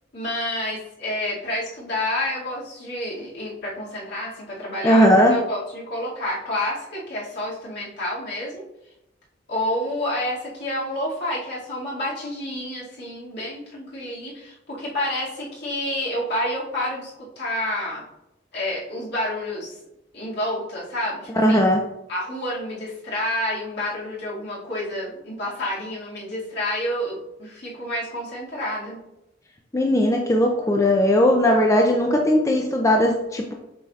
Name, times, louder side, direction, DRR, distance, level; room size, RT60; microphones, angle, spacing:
voice 1, 0.1-8.6 9.5-18.0 18.5-19.8 20.1-21.6 22.1-29.0, left 1 dB, 60° left, -6 dB, 2.2 m, -29 dB
voice 2, 4.8-5.4 21.4-21.8 29.7-33.5, equal, 15° left, 1 dB, 0.5 m, -18 dB
7.5 x 5.5 x 2.4 m, 0.87 s
head